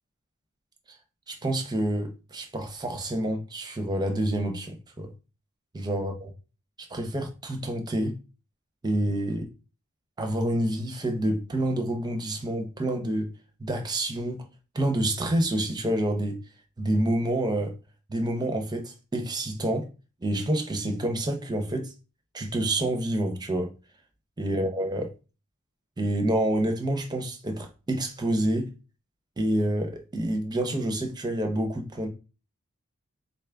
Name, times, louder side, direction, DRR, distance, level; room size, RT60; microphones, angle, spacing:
voice 1, 1.3-5.1 5.7-6.3 6.9-8.2 8.8-9.5 10.2-13.3 13.6-14.4 14.7-16.4 16.8-17.7 18.1-19.9 20.2-21.9 22.3-23.7 24.4-25.1 26.0-28.7 29.4-32.1, right 1 dB, 20° right, 0.6 m, -28 dB
4.0 x 2.4 x 3.4 m
head